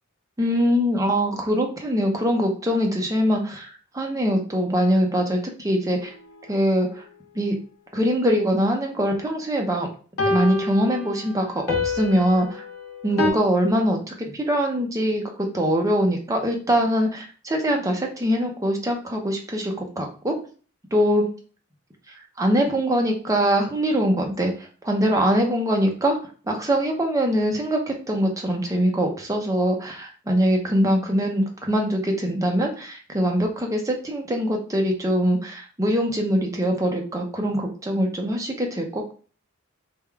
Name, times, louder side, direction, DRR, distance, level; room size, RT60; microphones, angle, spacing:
voice 1, 0.4-3.7 3.9-6.1 6.5-7.0 7.3-7.6 7.9-9.9 10.3-12.6 13.0-20.4 20.9-21.3 22.4-26.2 26.5-39.1, equal, 15° right, 1 dB, 0.6 m, -23 dB
sound 1, 5.9-6.0 10.2-13.3, left 3 dB, 80° left, 0.7 m, -27 dB
3.5 x 2.2 x 3.4 m, 0.39 s
head